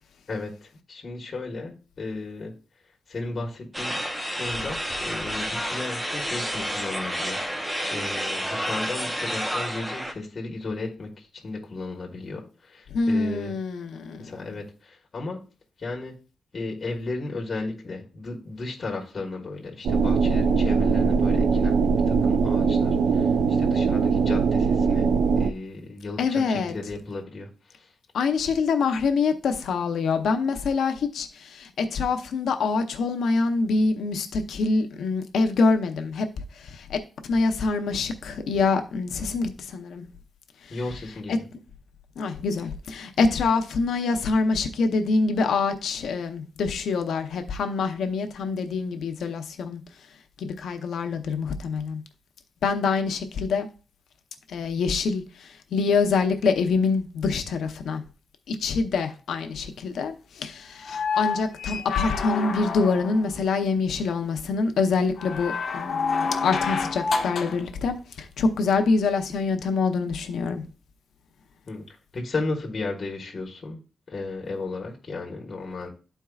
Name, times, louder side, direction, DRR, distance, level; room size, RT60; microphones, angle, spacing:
voice 1, 0.3-2.5 3.1-4.0 4.3-13.5 14.2-15.4 15.8-16.2 16.5-21.8 22.1-25.1 25.4-27.9 40.7-41.5 71.7-71.8 72.1-73.8 74.1-75.9, left 3 dB, 40° left, 1.4 m, -34 dB
sound 1, 3.7-10.1, equal, 5° right, 0.8 m, -30 dB
voice 2, 12.9-14.4 26.2-26.7 28.1-36.3 36.5-37.0 37.2-40.1 40.6-40.8 41.3-41.4 42.2-49.8 50.4-52.0 52.6-53.7 54.5-58.0 58.5-70.6, left 4 dB, 85° left, 0.8 m, -25 dB
sound 2, 19.8-25.5, right 5 dB, 75° right, 0.5 m, -21 dB
sound 3, 60.8-63.3 65.2-67.6 69.3-69.4, left 5 dB, 65° left, 1.1 m, -28 dB
12.0 x 4.5 x 2.4 m
wide cardioid pair, 135°, 0 cm